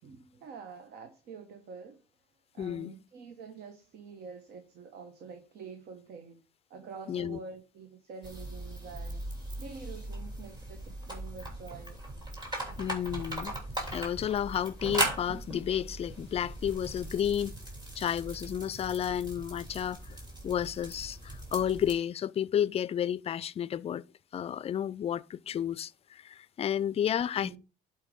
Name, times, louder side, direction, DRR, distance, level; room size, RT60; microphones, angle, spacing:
voice 1, 0.0-2.0 2.5-6.4 6.7-9.2 9.6-12.0 27.3-27.6, right 5 dB, 70° right, 1.1 m, -47 dB
voice 2, 2.6-2.9 7.1-7.4 12.8-13.6 13.9-17.5 18.0-20.2 20.4-24.0 24.3-27.6, left 9 dB, 35° left, 0.4 m, -31 dB
sound 1, 8.2-21.9, right 1 dB, 25° right, 3.0 m, -39 dB
11.0 x 4.6 x 3.6 m
cardioid pair, 110°, 17 cm